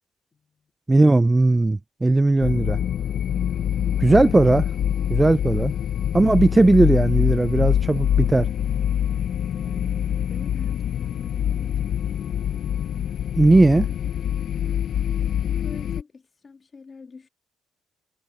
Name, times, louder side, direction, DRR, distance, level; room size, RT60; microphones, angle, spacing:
voice 1, 0.3-0.7 9.6-12.0 15.3-17.3, left 4 dB, 35° left, 2.1 m, -45 dB
voice 2, 0.9-2.8 4.0-4.7 5.1-5.7 6.1-8.5 13.4-13.9, right 2 dB, 15° right, 0.3 m, -17 dB
sound 1, 2.4-16.0, left 9 dB, 65° left, 0.6 m, -25 dB
cardioid pair, 90°, 0 cm